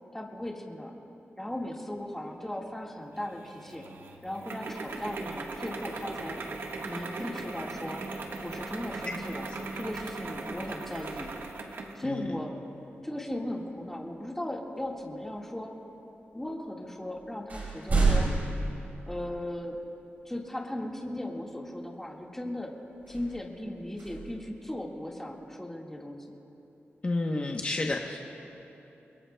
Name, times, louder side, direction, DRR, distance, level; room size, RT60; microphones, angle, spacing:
voice 1, 0.1-0.9 1.4-3.8 4.2-6.4 6.9-8.0 8.4-9.4 9.7-11.3 11.9-12.6 13.0-15.7 16.3-18.3 19.1-19.8 20.2-22.7 23.1-26.2, left 1 dB, 10° left, -1 dB, 1.7 m, -37 dB
sound 1, 3.2-12.0, right 3 dB, 70° right, 1.4 m, -39 dB
sound 2, 9.9-11.6 13.8-13.9 14.8-15.5 16.4-16.5 16.9-19.7 20.3-20.4 23.0-25.2, right 3 dB, 45° right, 4.7 m, -32 dB
voice 2, 12.0-12.4 27.0-28.2, left 2 dB, 30° left, 1 dB, 0.9 m, -30 dB
29.0 x 22.0 x 2.2 m, 3.0 s
wide cardioid pair, 165°, 4 cm